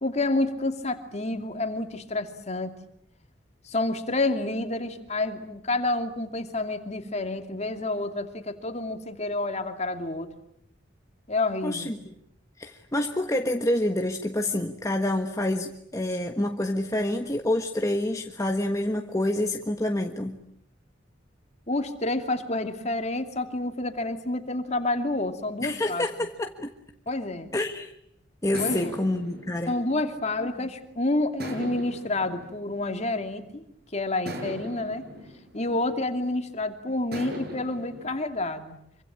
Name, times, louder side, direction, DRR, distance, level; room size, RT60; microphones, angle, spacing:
voice 1, 0.0-2.7 3.6-10.3 11.3-11.9 21.7-26.1 27.1-27.5 28.6-28.8 29.7-33.6 33.9-35.1 35.5-38.8, left 2 dB, 35° left, 7 dB, 2.7 m, -29 dB
voice 2, 11.6-12.0 12.6-20.4 25.6-26.7 27.5-27.9 28.4-29.7, left 1 dB, 15° left, 4 dB, 1.4 m, -27 dB
sound 1, 28.5-30.8 31.4-33.5 34.2-36.5 37.1-38.1, right 1 dB, 55° right, 6.8 m, -40 dB
26.0 x 25.0 x 8.9 m, 0.72 s
head